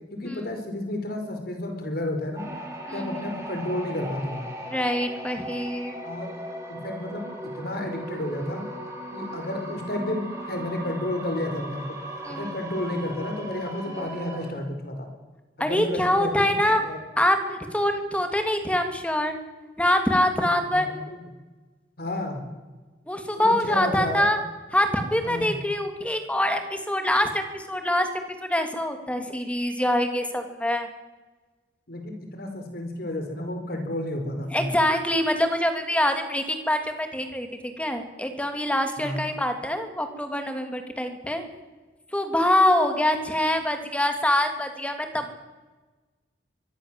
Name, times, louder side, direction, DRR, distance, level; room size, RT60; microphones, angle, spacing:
voice 1, 0.1-2.5 2.9-4.5 6.0-6.3 6.7-8.6 9.1-12.0 12.3-15.1 15.6-16.5 16.8-17.0 20.7-21.2 22.0-22.5 23.4-24.2 25.2-25.5 31.9-34.7 39.0-39.2, left 1 dB, 60° left, 5 dB, 4.9 m, -31 dB
sound 1, 2.4-14.5, right 1 dB, 15° right, 8.0 m, -38 dB
voice 2, 2.9-3.5 4.7-6.0 12.2-12.5 13.9-14.0 15.6-16.8 17.2-19.4 19.8-20.8 23.1-24.4 24.7-28.1 28.5-30.9 34.5-41.4 42.1-45.3, left 1 dB, 10° left, 6 dB, 3.0 m, -25 dB
24.0 x 23.0 x 7.7 m, 1.2 s
head